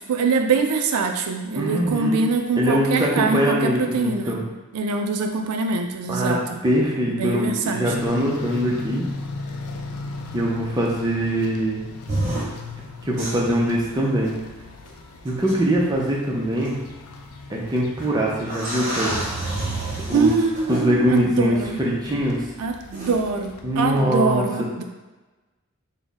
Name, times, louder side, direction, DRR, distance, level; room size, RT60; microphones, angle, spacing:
voice 1, 0.1-4.4 4.7-6.4 7.1-7.8 20.1-21.8 22.6-24.8, right 4 dB, 90° right, 5 dB, 0.4 m, -23 dB
voice 2, 1.5-2.3 2.6-4.4 6.1-6.4 6.6-9.0 10.3-11.8 13.0-14.3 15.2-16.8 17.5-19.2 20.1-20.3 20.7-22.4 23.6-24.5, equal, 20° right, -4 dB, 0.5 m, -22 dB
sound 1, 7.8-24.0, left 3 dB, 80° left, 0.4 m, -38 dB
sound 2, 12.1-12.5 13.2-13.5 14.9-15.0 15.5-15.6 16.6-16.7 18.0-18.1 18.5-20.8 22.9-23.2, right 1 dB, 35° right, 1.0 m, -28 dB
4.1 x 2.1 x 3.5 m, 1.2 s
head